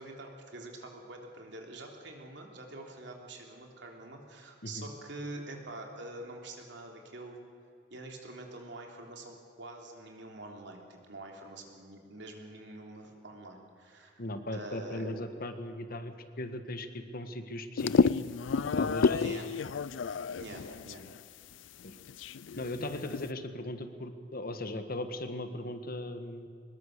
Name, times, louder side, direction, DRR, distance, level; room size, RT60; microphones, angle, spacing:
voice 1, 0.0-7.4 7.9-14.2 14.5-15.1 19.2-19.5 20.4-21.0, right 2 dB, 70° right, 1 dB, 3.4 m, -45 dB
voice 2, 14.2-18.1 18.8-19.3 21.8-22.0 22.6-26.5, left 1 dB, 55° left, 9 dB, 1.5 m, -38 dB
sound 1, 17.8-21.2 21.5-21.6 21.8-23.3, left 5 dB, 85° left, 0.4 m, -30 dB
23.5 x 20.5 x 6.7 m, 2.4 s
head